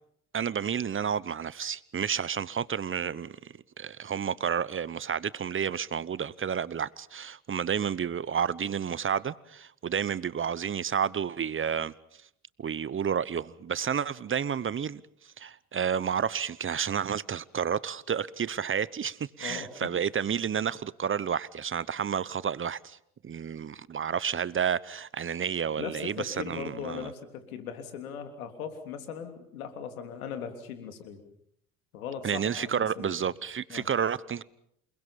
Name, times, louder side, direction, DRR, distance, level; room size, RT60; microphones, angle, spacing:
voice 1, 0.3-11.9 12.6-23.0 23.2-27.1 32.2-34.4, right 7 dB, 30° right, 0.9 m, -31 dB
voice 2, 19.4-19.9 25.8-31.2 31.9-33.1 33.7-33.9, left 7 dB, 85° left, 3.4 m, -39 dB
28.5 x 20.5 x 7.1 m
hypercardioid pair, 65°, 41 cm